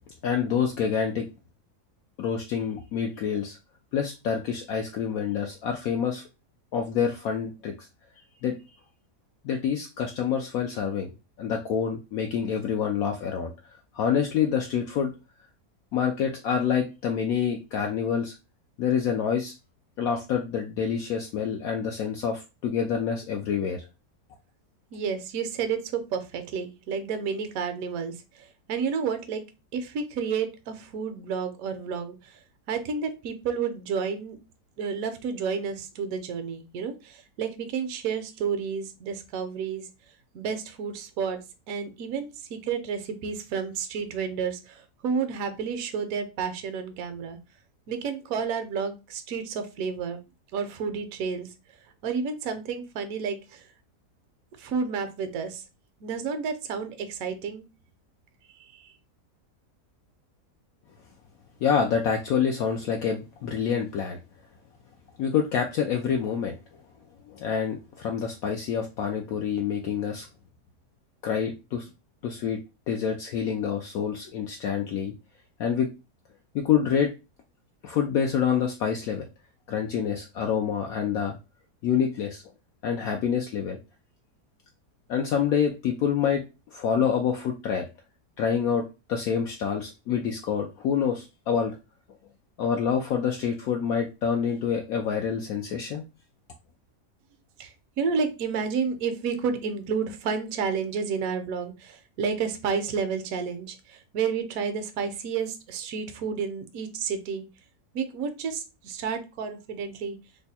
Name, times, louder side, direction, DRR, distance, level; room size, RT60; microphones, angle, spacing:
voice 1, 0.2-1.3 2.2-3.6 3.9-6.2 6.7-7.9 8.4-8.5 9.4-13.5 13.9-15.1 15.9-18.3 18.8-19.5 20.0-23.9 61.6-64.2 65.2-66.6 67.2-70.3 71.2-71.9 72.2-72.6 72.9-75.1 75.6-75.9 76.5-77.1 77.8-79.3 79.7-81.3 81.8-82.4 82.8-83.8 85.1-86.4 86.7-87.9 88.4-91.8 92.6-96.0, left 7 dB, 70° left, 2 dB, 0.9 m, -27 dB
voice 2, 24.9-29.4 29.7-32.4 32.7-34.4 34.8-39.9 40.3-41.4 41.7-47.4 47.9-50.2 50.5-51.5 52.0-53.6 54.6-55.6 56.0-57.6 58.8-58.9 97.6-107.4 107.9-110.2, right 6 dB, 65° right, 8 dB, 1.0 m, -31 dB
3.4 x 2.2 x 4.0 m, 0.28 s
omnidirectional pair, 1.8 m